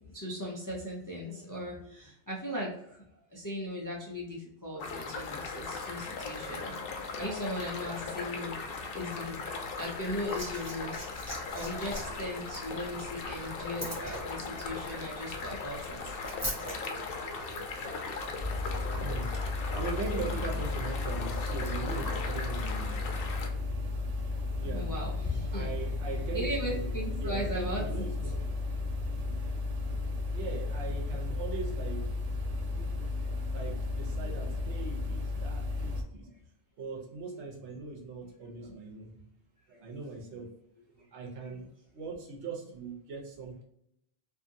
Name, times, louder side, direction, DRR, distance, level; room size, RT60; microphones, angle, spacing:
voice 1, 0.1-3.0 3.3-8.6 8.9-9.5 9.8-10.9 11.5-16.0 24.7-25.7 26.3-27.8 32.8-32.9 34.1-34.3, equal, 30° left, -4 dB, 0.3 m, -38 dB
sound 1, 4.8-23.5, left 4 dB, 65° left, 0.7 m, -38 dB
Liquid, 9.8-16.8 17.8-17.9, equal, 15° right, 0.9 m, -42 dB
voice 2, 13.9-14.6 15.9-23.5 24.2-24.9 25.5-28.4 30.3-32.1 32.7-36.3 36.8-39.1 39.7-40.5 40.9-43.6, right 4 dB, 85° right, 0 dB, 1.1 m, -41 dB
sound 2, 18.4-36.0, left 3 dB, 65° right, 0.4 m, -34 dB
2.6 x 2.5 x 2.6 m, 0.75 s
omnidirectional pair, 1.2 m